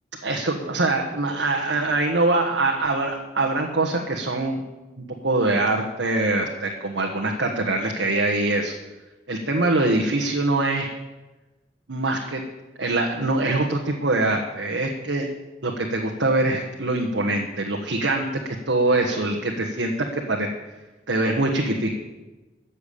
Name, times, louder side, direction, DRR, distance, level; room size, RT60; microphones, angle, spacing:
voice 1, 0.2-4.6 5.2-8.7 9.3-10.9 11.9-12.4 12.8-15.3 15.6-20.5 21.1-21.9, right 2 dB, 90° right, 1 dB, 1.5 m, -23 dB
14.0 x 7.3 x 8.4 m, 1.1 s
head